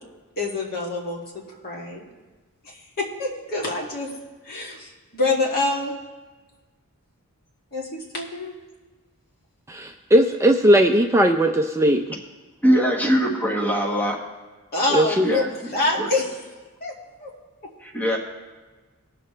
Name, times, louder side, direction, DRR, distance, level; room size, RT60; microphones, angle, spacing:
voice 1, 0.4-2.0 3.0-4.1 4.4-5.9 7.7-8.5 14.7-15.5 15.7-16.3 16.8-17.3, left 2 dB, 45° left, -3 dB, 2.3 m, -26 dB
voice 2, 9.7-12.2 14.9-15.3, right 1 dB, 10° right, 4 dB, 0.4 m, -18 dB
voice 3, 12.6-14.2 15.1-15.5 17.8-18.2, equal, 5° left, -2 dB, 1.4 m, -21 dB
20.5 x 7.0 x 3.3 m, 1.3 s
head